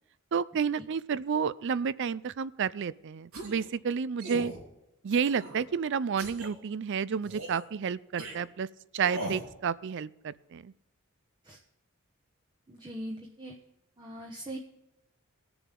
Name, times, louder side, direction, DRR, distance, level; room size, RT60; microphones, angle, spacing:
voice 1, 0.3-4.5 5.0-8.7 8.9-10.7, right 6 dB, 55° right, 19 dB, 0.4 m, -30 dB
sound 1, 3.3-3.7 4.2-4.6 5.1-5.6 6.2-6.5 7.2-7.6 8.2-8.4 9.0-9.5, right 1 dB, 85° right, 3.4 m, -39 dB
voice 2, 12.7-13.6 14.0-14.6, right 1 dB, 20° right, 0 dB, 1.0 m, -41 dB
20.5 x 7.0 x 3.7 m, 0.89 s
head